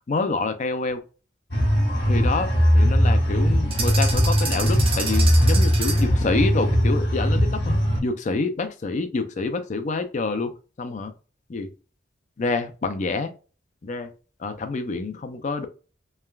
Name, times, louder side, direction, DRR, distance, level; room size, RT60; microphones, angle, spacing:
voice 1, 0.1-1.0 2.1-7.8 8.0-11.1 11.5-11.7 12.4-13.3 13.8-14.1 14.4-15.7, left 3 dB, 40° left, 8 dB, 0.4 m, -27 dB
sound 1, 1.5-8.0, equal, 60° left, 1.1 m, -20 dB
sound 2, 3.7-6.2, right 4 dB, 30° right, 0.5 m, -30 dB
3.2 x 2.3 x 2.2 m, 0.34 s
head